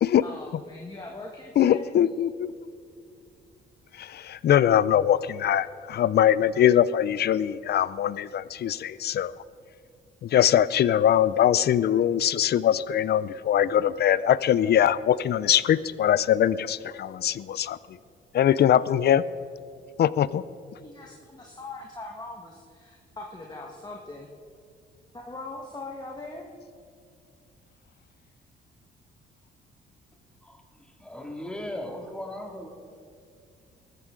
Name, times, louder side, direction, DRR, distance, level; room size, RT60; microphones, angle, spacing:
voice 1, 0.2-1.9 20.8-24.3 25.1-26.5, left 2 dB, 20° left, 0 dB, 1.6 m, -41 dB
voice 2, 1.6-2.5 4.0-9.3 10.2-17.8 18.3-19.2 20.0-20.4, left 10 dB, 55° left, 18 dB, 0.5 m, -22 dB
voice 3, 30.4-32.7, left 1 dB, 5° left, 2 dB, 2.2 m, -38 dB
20.0 x 14.0 x 3.8 m, 2.3 s
cardioid pair, 90°, 20 cm